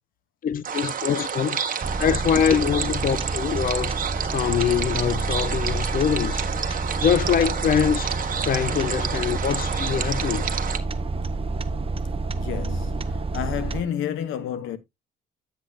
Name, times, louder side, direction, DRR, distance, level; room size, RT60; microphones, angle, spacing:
voice 1, 0.4-1.6 2.0-3.9 4.3-6.4 7.0-8.2 8.4-10.5, left 8 dB, 45° left, 0.6 m, -23 dB
sound 1, 0.6-10.8, right 7 dB, 45° right, 1.4 m, -30 dB
sound 2, 1.8-13.8, right 3 dB, 30° right, 0.8 m, -29 dB
Trumpet, 5.3-10.4, equal, 5° left, 5.3 m, -46 dB
voice 2, 12.3-14.8, left 9 dB, 85° left, 1.1 m, -31 dB
9.8 x 7.9 x 2.5 m
cardioid pair, 90°, 20 cm